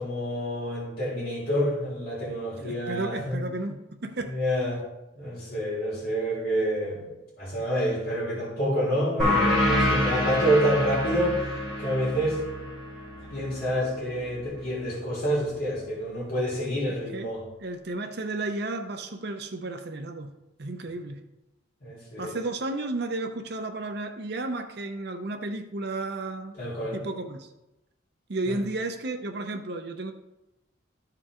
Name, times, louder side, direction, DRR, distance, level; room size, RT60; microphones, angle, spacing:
voice 1, 0.0-3.4 4.3-4.8 5.2-7.1 7.4-11.4 11.8-12.4 13.3-17.4 21.8-22.3 26.6-27.0 28.5-28.6, equal, 50° left, 3.4 m, -28 dB
voice 2, 2.6-4.4 17.1-17.3 17.6-20.3 20.6-21.2 22.2-26.6 26.9-27.5 28.3-30.1, right 2 dB, 55° right, 0.7 m, -33 dB
sound 1, 9.2-14.4, left 1 dB, ahead, 3.3 m, -27 dB
13.5 x 4.5 x 3.8 m
head